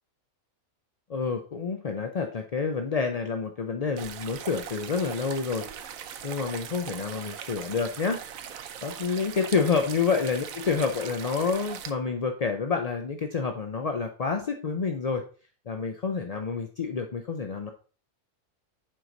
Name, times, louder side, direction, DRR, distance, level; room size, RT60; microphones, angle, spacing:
voice 1, 1.1-5.7 6.2-8.2 8.8-15.2 15.7-17.7, left 5 dB, 50° left, 5 dB, 0.4 m, -28 dB
sound 1, 4.0-11.9, right 8 dB, 70° right, 1.1 m, -40 dB
7.6 x 4.8 x 3.9 m, 0.38 s
omnidirectional pair, 1.5 m